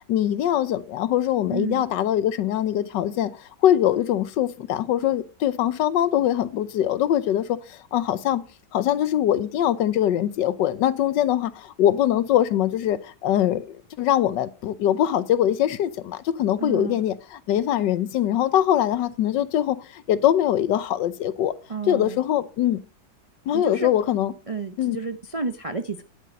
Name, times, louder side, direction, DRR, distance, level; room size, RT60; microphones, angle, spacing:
voice 1, 0.1-3.4 3.6-8.4 8.7-21.5 21.9-22.8 23.5-24.3 24.8-25.0, left 11 dB, 85° left, 1.4 m, -22 dB
voice 2, 1.5-1.9 16.6-17.0 21.7-22.2 23.5-23.9 24.5-26.0, right 4 dB, 55° right, 0.3 m, -31 dB
10.5 x 8.4 x 5.3 m
omnidirectional pair, 1.9 m